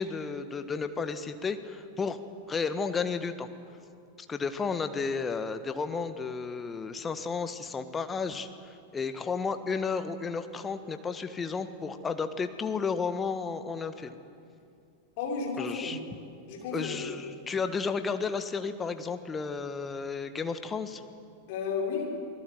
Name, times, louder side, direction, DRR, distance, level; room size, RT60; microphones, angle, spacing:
voice 1, 0.0-2.2 2.5-3.5 4.2-14.1 15.6-16.0 16.7-21.0, left 5 dB, 15° left, 9 dB, 1.5 m, -32 dB
voice 2, 15.2-16.0 16.5-17.2 21.5-22.1, left 5 dB, 50° left, -1 dB, 6.6 m, -33 dB
28.5 x 20.0 x 7.9 m, 2.4 s
figure-of-eight pair, 90°, 0 cm